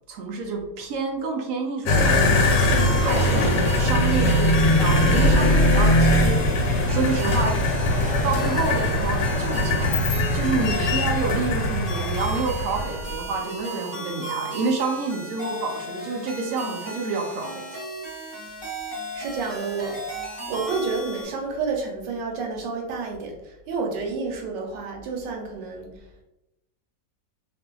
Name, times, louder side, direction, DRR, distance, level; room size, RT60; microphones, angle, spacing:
voice 1, 0.1-7.6 8.2-9.9 10.3-17.6, right 4 dB, 75° right, -1 dB, 0.7 m, -28 dB
sound 1, 1.9-13.2, left 1 dB, 80° left, 1.2 m, -21 dB
sound 2, 2.5-21.3, right 1 dB, 30° left, 0.7 m, -36 dB
voice 2, 10.5-10.9 19.1-20.0 20.5-25.9, right 4 dB, 90° right, 1 dB, 1.3 m, -30 dB
2.7 x 2.5 x 2.2 m, 0.89 s
omnidirectional pair, 1.9 m